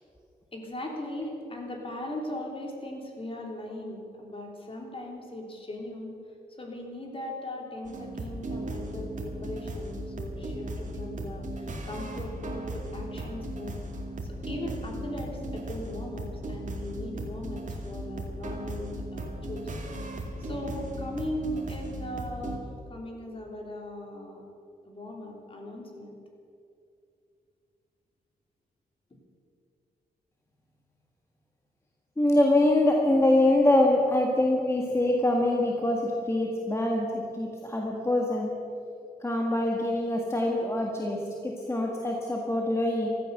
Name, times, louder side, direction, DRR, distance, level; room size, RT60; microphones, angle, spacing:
voice 1, 0.5-6.1 6.6-13.8 14.2-19.7 20.4-24.4 24.8-26.1, left 1 dB, 35° left, 1 dB, 3.3 m, -38 dB
sound 1, 7.8-22.6, right 1 dB, 50° right, 2.4 m, -37 dB
voice 2, 32.2-38.5 39.2-43.1, left 1 dB, 15° left, -1 dB, 1.7 m, -24 dB
15.0 x 13.0 x 6.7 m, 2.5 s
cardioid pair, 100°, 16 cm